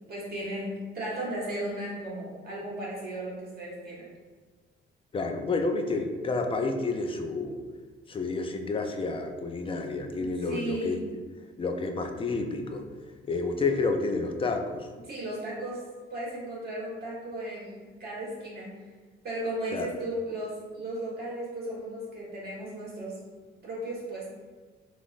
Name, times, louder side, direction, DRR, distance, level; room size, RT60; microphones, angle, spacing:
voice 1, 0.1-4.0 10.1-10.9 15.1-18.7 19.2-23.2 23.6-24.3, right 1 dB, 50° right, -6 dB, 1.4 m, -35 dB
voice 2, 5.1-7.7 8.1-11.0 11.6-12.9 13.2-14.9 19.7-19.9, left 3 dB, 25° left, 4 dB, 0.4 m, -30 dB
3.5 x 2.4 x 2.4 m, 1.4 s
cardioid pair, 90°, 20 cm